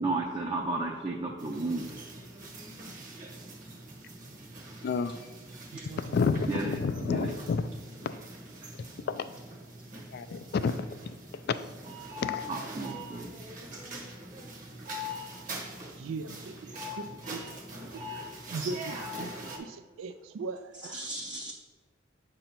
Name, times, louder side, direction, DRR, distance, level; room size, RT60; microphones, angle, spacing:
voice 1, 0.0-1.9 6.5-6.8 7.1-7.3 12.5-13.3 20.9-21.5, right 2 dB, 25° right, 0 dB, 0.5 m, -33 dB
sound 1, 1.4-19.6, equal, 40° right, 0.9 m, -43 dB
voice 2, 4.8-5.2 6.0-7.7 9.1-9.2 10.1-10.9 12.2-12.4, left 5 dB, 55° left, 12 dB, 0.3 m, -29 dB
voice 3, 5.7-6.3 16.0-17.5 17.9-18.0 18.5-19.3 19.6-21.1, right 4 dB, 85° right, 10 dB, 0.3 m, -39 dB
7.7 x 2.8 x 5.7 m, 1.3 s
head